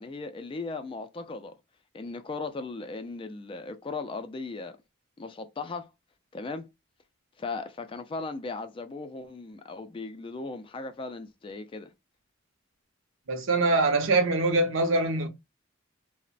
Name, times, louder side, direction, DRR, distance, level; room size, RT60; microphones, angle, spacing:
voice 1, 0.0-1.6 1.9-4.8 5.2-5.9 6.3-6.7 7.4-11.9, left 3 dB, 25° left, 0.3 m, -37 dB
voice 2, 13.3-15.3, right 2 dB, 70° right, 0.6 m, -23 dB
3.0 x 2.0 x 2.5 m
head